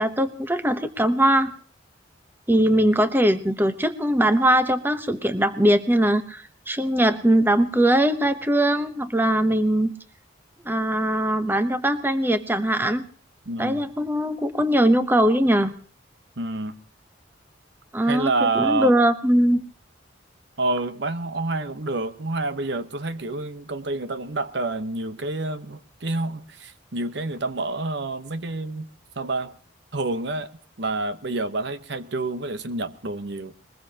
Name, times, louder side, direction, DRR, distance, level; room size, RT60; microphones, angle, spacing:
voice 1, 0.0-1.5 2.5-9.9 10.6-13.1 13.6-15.7 17.9-19.6, right 1 dB, 10° right, 0.9 m, -21 dB
voice 2, 2.5-2.9 13.5-13.9 16.4-16.8 18.0-18.9 20.6-28.9 29.2-29.5 29.9-30.5 30.8-33.5, right 2 dB, 60° right, 1.0 m, -28 dB
21.5 x 20.5 x 2.9 m
head